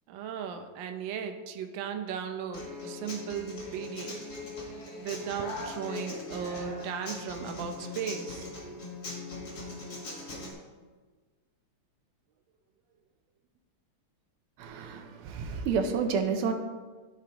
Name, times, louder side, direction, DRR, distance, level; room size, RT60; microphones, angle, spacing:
voice 1, 0.1-4.2 5.0-8.5, right 7 dB, 70° right, 6 dB, 1.3 m, -36 dB
Human voice / Acoustic guitar, 2.5-10.5, left 2 dB, 50° left, 2.2 m, -40 dB
voice 2, 14.6-16.5, right 5 dB, 90° right, 6 dB, 1.7 m, -30 dB
13.5 x 5.0 x 2.9 m, 1.4 s
omnidirectional pair, 2.4 m